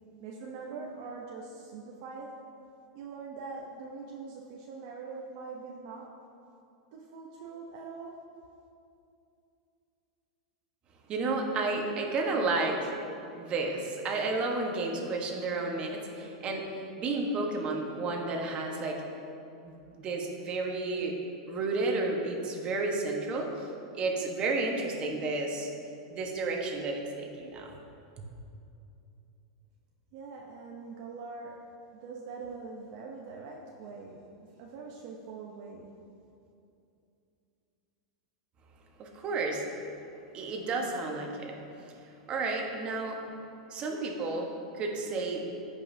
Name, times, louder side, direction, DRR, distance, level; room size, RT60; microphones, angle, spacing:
voice 1, 0.2-2.3 2.9-6.1 6.9-8.2 30.1-31.5 31.9-34.2 34.6-35.9, right 4 dB, 55° right, -1 dB, 0.8 m, -43 dB
voice 2, 11.1-12.9 13.3-19.0 19.6-21.2 21.5-23.7 23.9-25.7 26.1-27.7 28.2-28.3 39.0-39.6 40.3-41.6 42.3-43.2 43.7-45.5, right 3 dB, 35° right, 1 dB, 1.3 m, -32 dB
14.5 x 5.4 x 2.8 m, 2.7 s
supercardioid pair, 125°, 3 cm